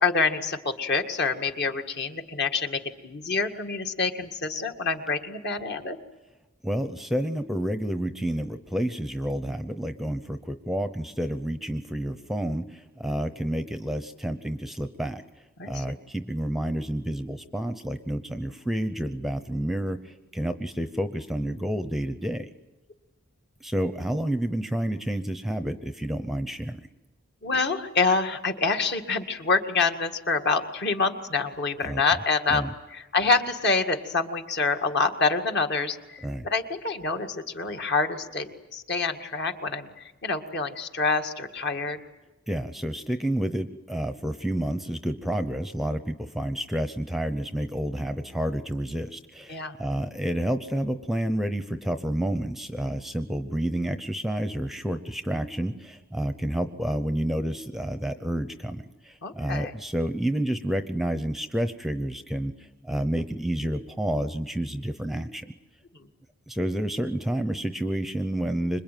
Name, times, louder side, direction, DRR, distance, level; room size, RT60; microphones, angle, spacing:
voice 1, 0.0-6.0 15.6-15.8 27.4-42.0 49.5-49.8 59.2-59.7, left 4 dB, 50° left, 5 dB, 2.0 m, -27 dB
voice 2, 6.6-15.2 15.7-22.5 23.6-26.9 31.8-32.0 32.5-32.7 36.2-36.5 42.5-62.5 62.8-65.5 66.5-68.8, right 1 dB, ahead, 9 dB, 0.8 m, -29 dB
26.5 x 22.0 x 9.3 m, 1.1 s
head